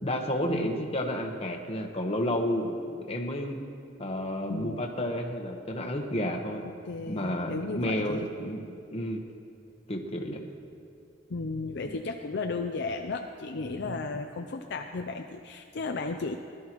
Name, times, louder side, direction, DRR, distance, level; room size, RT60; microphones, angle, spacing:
voice 1, 0.0-3.6 4.0-6.6 7.1-9.2 9.9-10.5 11.9-12.0 13.8-14.0, left 1 dB, 30° left, 2 dB, 1.2 m, -31 dB
voice 2, 4.5-4.8 6.9-8.5 11.3-16.4, left 3 dB, 60° left, 4 dB, 0.5 m, -34 dB
20.0 x 12.5 x 3.1 m, 2.5 s
head